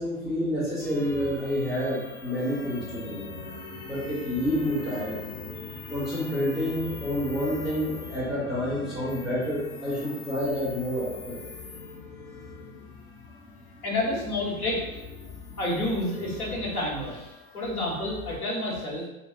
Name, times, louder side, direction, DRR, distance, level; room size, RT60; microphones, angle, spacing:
voice 1, 0.0-3.2 3.9-5.2 5.9-11.4, equal, ahead, -10 dB, 0.5 m, -29 dB
sound 1, 0.8-18.4, left 4 dB, 55° left, 0.8 m, -41 dB
voice 2, 13.8-14.8 15.6-19.1, left 1 dB, 80° left, -3 dB, 1.0 m, -29 dB
2.2 x 2.1 x 3.5 m, 0.98 s
figure-of-eight pair, 95°, 43 cm